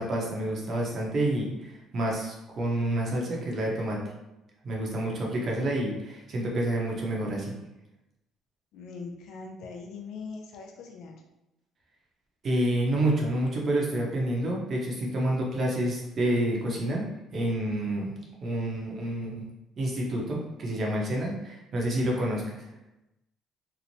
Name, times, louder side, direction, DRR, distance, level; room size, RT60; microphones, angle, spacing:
voice 1, 0.0-4.0 4.6-7.5 12.4-17.0 17.3-18.1 18.4-19.5 19.8-22.6, right 1 dB, 45° right, -2 dB, 0.7 m, -28 dB
voice 2, 8.7-11.1, left 4 dB, 75° left, 1 dB, 0.4 m, -41 dB
2.9 x 2.1 x 2.6 m, 0.96 s
cardioid pair, 125°, 0 cm